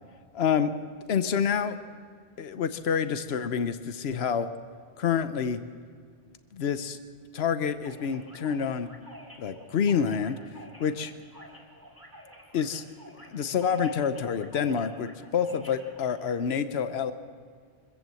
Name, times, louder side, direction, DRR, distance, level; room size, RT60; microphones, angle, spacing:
voice 1, 0.3-0.7 1.1-1.8 2.4-4.5 5.0-5.6 6.5-7.0 7.3-8.9 9.4-10.4 10.8-11.1 12.5-12.9 13.3-17.1, left 7 dB, 80° left, 11 dB, 1.1 m, -27 dB
sound 1, 7.8-16.3, equal, 15° left, 3.7 m, -50 dB
25.0 x 14.5 x 7.8 m, 2.1 s
omnidirectional pair, 1.1 m